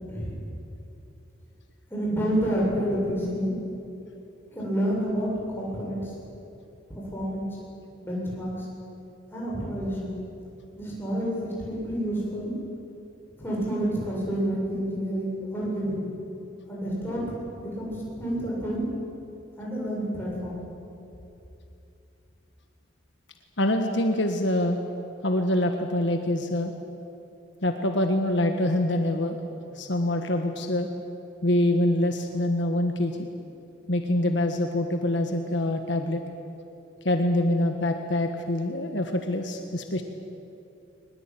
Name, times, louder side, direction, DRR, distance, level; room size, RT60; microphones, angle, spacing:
voice 1, 1.9-3.5 4.5-6.1 6.9-7.6 8.0-8.7 9.3-10.2 10.7-12.5 13.4-16.0 16.7-17.4 17.6-18.8 19.6-20.6, equal, 10° left, -5 dB, 7.7 m, -29 dB
voice 2, 23.6-24.8 25.2-26.7 27.6-29.4 29.7-30.9 31.4-33.3 33.9-36.2 37.0-40.0, left 1 dB, 65° left, 5 dB, 1.5 m, -25 dB
22.0 x 20.5 x 9.2 m, 2.8 s
head